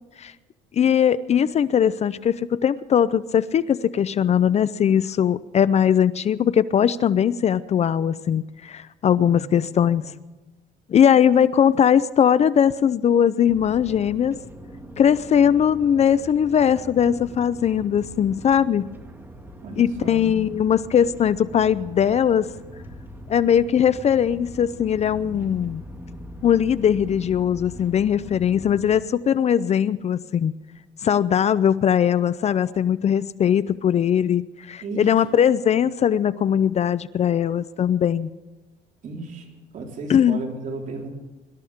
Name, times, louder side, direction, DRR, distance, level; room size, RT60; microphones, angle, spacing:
voice 1, 0.7-10.0 10.9-14.4 15.0-18.9 19.8-22.5 23.3-25.8 26.4-30.5 31.0-38.3 40.1-40.4, left 8 dB, 40° left, 17 dB, 0.5 m, -20 dB
voice 2, 9.1-10.1 19.6-20.5 34.8-35.4 39.0-41.1, right 3 dB, 50° right, 0 dB, 4.3 m, -35 dB
sound 1, 13.5-29.0, equal, 15° right, 2.0 m, -41 dB
25.0 x 13.0 x 3.6 m, 1.1 s
cardioid pair, 110°, 17 cm